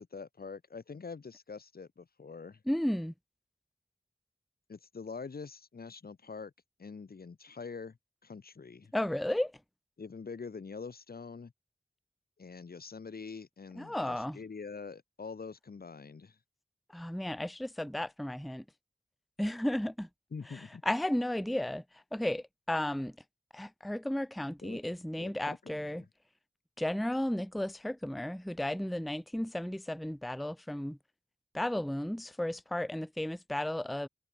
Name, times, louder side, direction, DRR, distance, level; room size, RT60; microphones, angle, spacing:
voice 1, 0.0-2.6 4.7-6.5 6.8-8.9 10.0-11.5 12.4-16.4 20.3-20.8 24.6-24.8 25.2-26.1, left 5 dB, 80° left, 1.0 m, -45 dB
voice 2, 2.7-3.1 8.9-9.5 13.8-14.4 16.9-18.6 19.4-20.1 20.5-23.1 23.5-26.0 26.8-31.0 31.5-34.1, left 1 dB, ahead, 0.4 m, -34 dB
wide cardioid pair, 55°, 16 cm